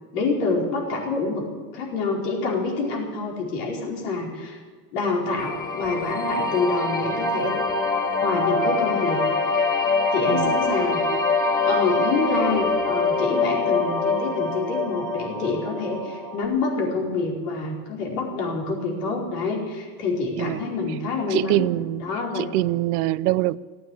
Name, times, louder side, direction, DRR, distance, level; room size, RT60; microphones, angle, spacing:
voice 1, 0.1-1.5 1.7-4.6 4.9-7.5 8.2-9.2 10.1-11.0 11.6-21.7 22.0-22.5, left 3 dB, 80° left, -2 dB, 4.9 m, -26 dB
sound 1, 5.4-16.4, left 3 dB, 20° left, 2.7 m, -24 dB
voice 2, 21.3-22.0 22.3-23.6, right 17 dB, 75° right, 18 dB, 0.6 m, -24 dB
17.0 x 9.3 x 8.7 m, 1.5 s
supercardioid pair, 110°, 45 cm